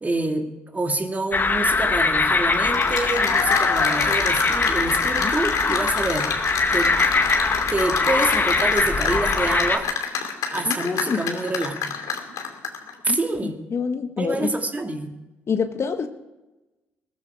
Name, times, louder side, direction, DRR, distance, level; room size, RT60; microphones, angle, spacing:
voice 1, 0.0-6.3 6.7-7.0 7.7-9.9 10.5-11.9 13.0-13.6 14.2-15.1, right 2 dB, 25° right, 4 dB, 2.5 m, -27 dB
sound 1, 1.3-9.8, left 3 dB, 30° left, 1.7 m, -22 dB
Cheering / Applause, 2.5-12.9, left 7 dB, 65° left, 2.7 m, -27 dB
voice 2, 10.7-11.4 13.1-14.5 15.5-16.1, left 5 dB, 45° left, 8 dB, 1.6 m, -27 dB
20.0 x 14.0 x 4.9 m, 1.0 s
hypercardioid pair, 45°, 6 cm